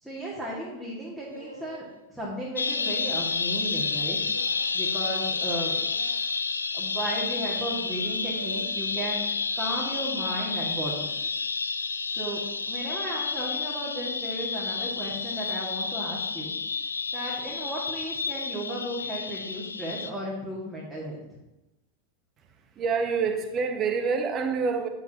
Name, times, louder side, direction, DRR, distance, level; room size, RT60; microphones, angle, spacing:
voice 1, 0.0-4.2 4.7-5.8 6.7-9.2 9.6-11.1 12.1-12.4 12.7-16.5 17.1-21.2, right 1 dB, 5° right, -7 dB, 2.0 m, -34 dB
sound 1, 1.3-1.9 2.8-3.4 4.3-4.7 5.7-6.2 7.1-7.6 8.4-8.7, right 2 dB, 80° right, 0.7 m, -45 dB
Alien Turbine Long, 2.6-20.1, left 4 dB, 75° left, 0.4 m, -30 dB
voice 2, 22.7-24.9, right 5 dB, 30° right, 6 dB, 1.1 m, -26 dB
10.5 x 7.8 x 2.9 m, 0.98 s
figure-of-eight pair, 90°, 0 cm